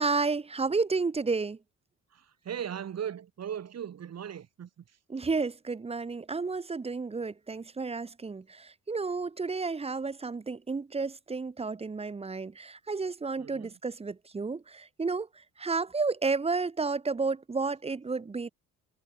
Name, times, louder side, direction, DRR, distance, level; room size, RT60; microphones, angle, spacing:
voice 1, 0.0-1.6 5.1-15.3 15.6-18.5, right 4 dB, 20° right, 0.9 m, -31 dB
voice 2, 2.1-5.0 13.4-13.8, right 9 dB, 50° right, 6.7 m, -38 dB
cardioid pair, 95°, 32 cm